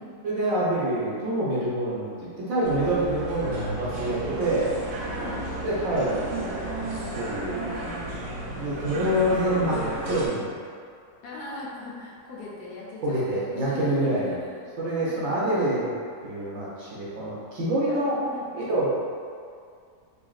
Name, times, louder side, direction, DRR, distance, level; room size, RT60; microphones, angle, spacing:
voice 1, 0.2-4.7 5.6-6.6 7.1-7.6 8.5-10.6 13.0-14.3 14.8-15.9 16.2-18.2 18.5-18.9, right 1 dB, 60° right, -7 dB, 1.0 m, -26 dB
sound 1, 2.6-10.3, right 2 dB, 80° right, 1.3 m, -33 dB
voice 2, 5.1-5.5 7.5-8.8 11.2-14.7 15.0-15.5 17.9-18.5, left 2 dB, 70° left, -5 dB, 1.2 m, -41 dB
3.8 x 3.3 x 2.4 m, 2.3 s
omnidirectional pair, 1.8 m